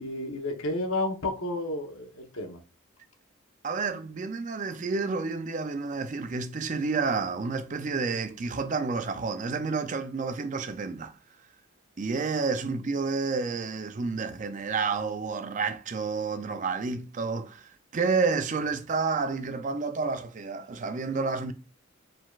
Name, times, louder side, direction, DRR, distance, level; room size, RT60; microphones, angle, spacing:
voice 1, 0.0-2.6, left 2 dB, 80° left, 1.0 m, -31 dB
voice 2, 3.6-11.1 12.0-21.5, right 4 dB, 35° right, 0.4 m, -30 dB
4.9 x 3.8 x 2.4 m
head